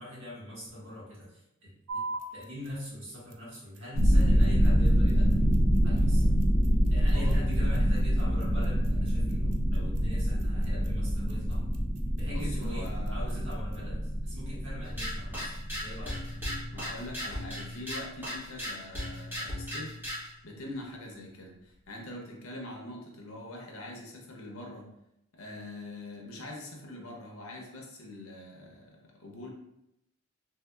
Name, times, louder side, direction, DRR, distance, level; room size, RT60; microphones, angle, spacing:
voice 1, 0.0-2.0 2.3-5.5 5.8-6.3 6.9-11.6 12.2-16.2, left 1 dB, 60° right, -6 dB, 1.3 m, -43 dB
sound 1, 1.9-13.9, right 3 dB, 80° right, 0.4 m, -46 dB
sound 2, 3.9-17.1, equal, 10° left, 1.2 m, -26 dB
voice 2, 12.3-13.3 16.7-20.0 20.4-24.9 25.3-29.5, left 1 dB, 70° left, 0 dB, 0.7 m, -43 dB
sound 3, 14.8-20.3, left 1 dB, 10° right, 0.9 m, -37 dB
3.4 x 2.7 x 2.3 m, 0.82 s
head